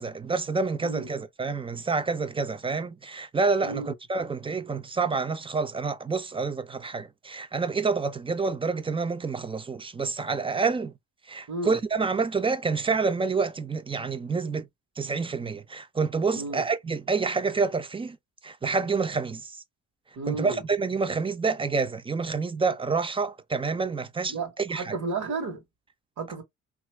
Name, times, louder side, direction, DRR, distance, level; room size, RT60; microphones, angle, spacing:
voice 1, 0.0-10.9 11.3-14.7 15.0-18.2 18.4-19.5 20.3-25.0, right 4 dB, 20° right, 0.4 m, -28 dB
voice 2, 3.6-3.9 11.5-11.8 16.3-16.7 20.2-20.6 24.3-25.6 26.2-26.4, right 3 dB, 70° right, 1.1 m, -33 dB
3.0 x 2.4 x 3.1 m
cardioid pair, 90°, 30 cm